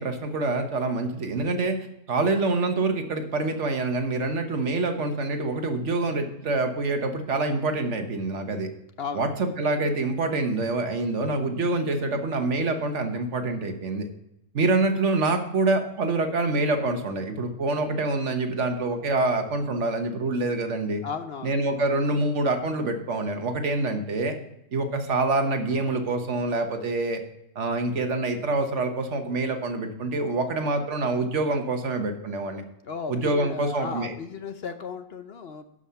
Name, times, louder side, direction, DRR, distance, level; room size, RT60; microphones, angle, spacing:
voice 1, 0.0-1.8 2.1-8.7 9.1-9.3 9.6-14.1 14.5-21.0 21.4-24.4 24.7-27.2 27.5-32.6 33.1-34.1, right 2 dB, 65° right, 6 dB, 1.4 m, -26 dB
voice 2, 9.0-9.3 21.0-21.6 32.8-35.6, left 5 dB, 55° left, 9 dB, 0.8 m, -35 dB
11.5 x 5.5 x 5.6 m, 0.84 s
omnidirectional pair, 1.3 m